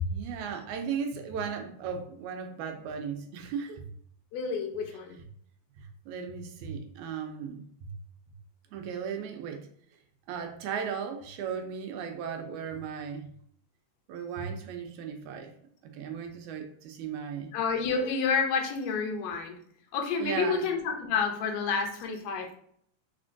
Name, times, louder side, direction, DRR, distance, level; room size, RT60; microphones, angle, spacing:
voice 1, 0.0-3.8 5.8-7.9 8.7-9.7 10.3-13.3 14.1-15.5 15.8-17.5 20.2-20.6, right 7 dB, 85° right, 5 dB, 2.1 m, -36 dB
voice 2, 4.3-5.2 17.5-19.6 19.9-22.6, left 5 dB, 75° left, 2 dB, 2.0 m, -29 dB
4.3 x 4.2 x 2.6 m, 0.64 s
omnidirectional pair, 3.3 m